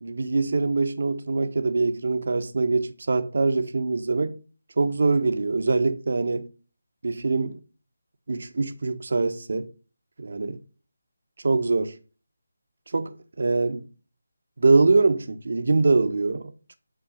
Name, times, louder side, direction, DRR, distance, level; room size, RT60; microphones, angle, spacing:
voice 1, 0.0-4.4 4.8-6.5 7.0-7.6 8.3-9.7 10.2-10.6 11.4-11.9 12.9-13.9 14.6-16.8, right 3 dB, 60° right, 1.4 m, -23 dB
10.5 x 4.6 x 6.7 m
figure-of-eight pair, 165°, 0 cm